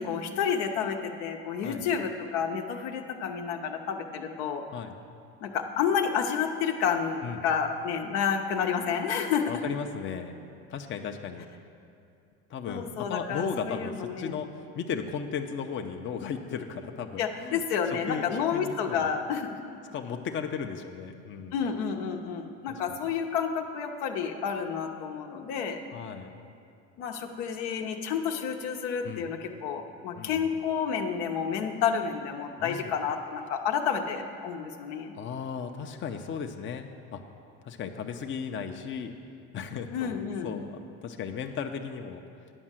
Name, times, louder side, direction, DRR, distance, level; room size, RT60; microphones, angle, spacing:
voice 1, 0.0-4.6 5.4-9.6 12.7-14.4 17.2-19.6 21.5-25.8 27.0-35.1 39.9-40.5, left 7 dB, 80° left, 3 dB, 0.9 m, -30 dB
voice 2, 9.5-10.3 10.7-11.4 12.5-14.5 14.7-17.6 18.1-18.3 18.5-19.1 19.9-21.6 22.7-23.0 25.9-26.3 29.0-29.3 30.2-30.5 32.6-32.9 35.1-37.2 37.6-39.1 39.5-42.2, left 6 dB, 40° left, 4 dB, 0.7 m, -36 dB
10.0 x 5.4 x 7.5 m, 2.5 s
supercardioid pair, 95°, 32 cm